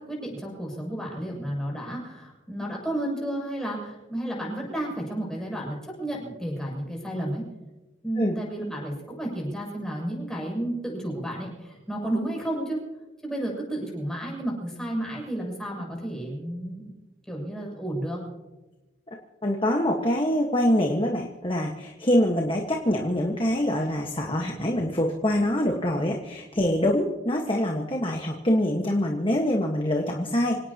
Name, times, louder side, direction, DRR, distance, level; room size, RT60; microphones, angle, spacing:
voice 1, 0.0-7.4 8.0-12.8 13.2-16.9 17.3-18.2, right 1 dB, 5° left, -3 dB, 7.3 m, -32 dB
voice 2, 19.4-30.6, left 1 dB, 25° left, 1 dB, 1.5 m, -25 dB
26.5 x 18.0 x 2.9 m, 1.1 s
head